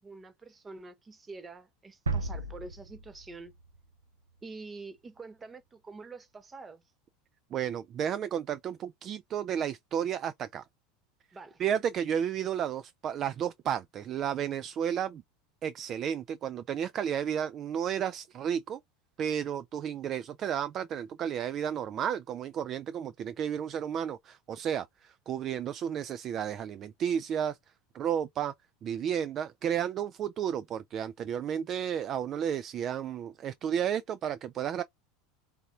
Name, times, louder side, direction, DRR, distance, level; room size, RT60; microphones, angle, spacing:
voice 1, 0.0-3.5 4.4-6.8 11.3-11.6, right 3 dB, 20° right, 1.0 m, -46 dB
sound 1, 2.1-3.9, right 3 dB, 75° right, 0.6 m, -35 dB
voice 2, 7.5-10.6 11.6-15.2 15.6-18.8 19.2-27.6 27.9-28.5 28.8-34.8, right 9 dB, 35° right, 0.3 m, -32 dB
4.1 x 3.4 x 2.7 m
figure-of-eight pair, 75°, 0 cm